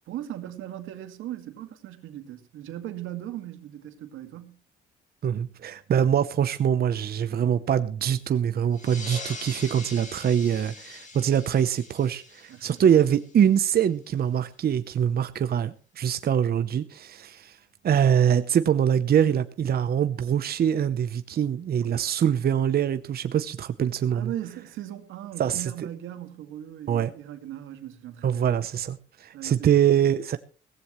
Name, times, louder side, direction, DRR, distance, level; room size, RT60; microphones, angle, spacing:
voice 1, 0.1-4.6 12.5-13.0 24.1-28.5 29.3-29.7, right 12 dB, 90° right, 2.1 m, -38 dB
voice 2, 5.2-17.6 17.8-24.3 25.4-25.7 26.9-27.1 28.2-30.4, right 9 dB, 50° right, 0.8 m, -24 dB
sound 1, 8.7-13.8, left 3 dB, 40° left, 5.1 m, -42 dB
17.5 x 15.0 x 3.2 m
cardioid pair, 90°, 20 cm